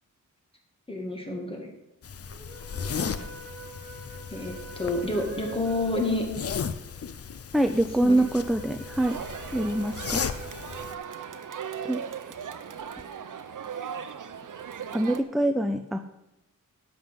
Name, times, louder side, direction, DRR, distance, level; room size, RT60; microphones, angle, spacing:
voice 1, 0.9-1.7 4.3-6.2 8.0-8.2, left 2 dB, 15° left, 1 dB, 2.1 m, -29 dB
sound 1, 2.0-10.9, left 6 dB, 45° left, 0.6 m, -36 dB
sound 2, 2.3-12.7, right 3 dB, 40° right, 1.8 m, -46 dB
voice 2, 7.5-9.2 9.5-10.2 11.8-12.0 14.9-16.0, right 1 dB, ahead, 6 dB, 0.4 m, -25 dB
Crowd, 9.0-15.2, right 7 dB, 70° right, 0.8 m, -38 dB
11.0 x 8.0 x 5.5 m, 0.90 s
wide cardioid pair, 115°, 32 cm